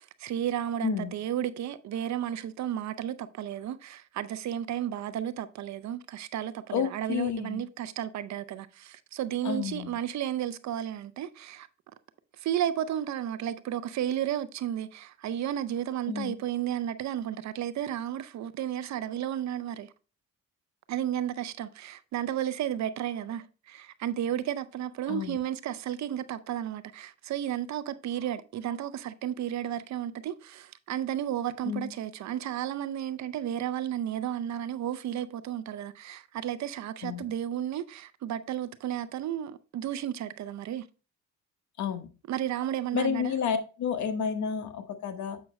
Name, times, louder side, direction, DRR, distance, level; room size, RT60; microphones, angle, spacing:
voice 1, 0.0-11.7 12.4-19.9 20.9-40.8 42.3-43.3, right 10 dB, 65° right, 0.6 m, -33 dB
voice 2, 0.8-1.1 6.7-7.6 9.4-9.9 16.1-16.4 25.1-25.4 31.6-31.9 37.0-37.3 41.8-42.1 42.9-45.4, left 7 dB, 70° left, 1.1 m, -31 dB
7.5 x 5.8 x 3.1 m
cardioid pair, 90°, 30 cm